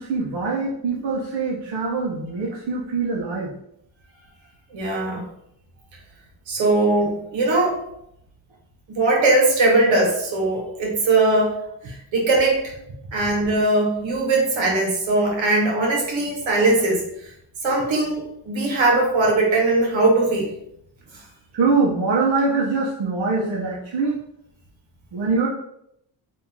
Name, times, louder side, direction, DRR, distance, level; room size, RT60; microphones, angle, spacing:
voice 1, 0.0-3.5 21.5-24.2 25.1-25.5, right 4 dB, 60° right, -4 dB, 0.9 m, -23 dB
voice 2, 4.7-5.2 6.5-7.8 8.9-11.5 11.8-12.7 13.1-17.0 17.6-20.5, right 2 dB, 80° right, -1 dB, 1.2 m, -20 dB
2.8 x 2.7 x 3.6 m, 0.76 s
cardioid pair, 65°, 45 cm